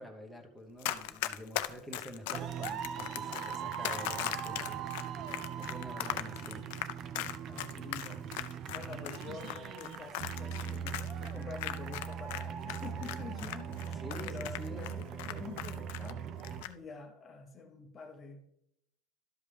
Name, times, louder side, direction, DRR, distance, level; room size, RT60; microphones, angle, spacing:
voice 1, 0.0-5.2 5.6-6.8 13.9-15.0, equal, 5° right, 4 dB, 1.0 m, -47 dB
Run, 0.8-12.4 12.7-16.1 16.4-16.7, left 14 dB, 80° left, 0.5 m, -38 dB
sound 1, 2.3-16.6, right 8 dB, 40° right, 0.5 m, -40 dB
voice 2, 7.5-16.4 16.6-18.4, left 4 dB, 25° left, 3 dB, 0.7 m, -47 dB
12.5 x 5.2 x 3.4 m, 0.77 s
cardioid pair, 155°, 0 cm